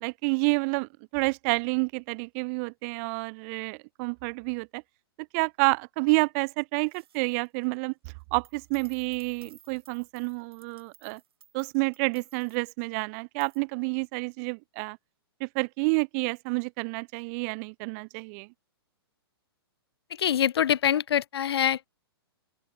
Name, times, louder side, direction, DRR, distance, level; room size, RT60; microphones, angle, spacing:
voice 1, 0.0-4.8 5.3-7.9 8.3-11.2 11.5-15.0 15.4-18.5, right 33 dB, 35° right, 0.5 m, -29 dB
sound 1, 6.8-7.8 8.2-12.6 13.4-13.6, right 10 dB, 70° right, 2.9 m, -57 dB
voice 2, 20.2-21.9, left 9 dB, 75° left, 0.6 m, -24 dB
open air
hypercardioid pair, 125°, 13 cm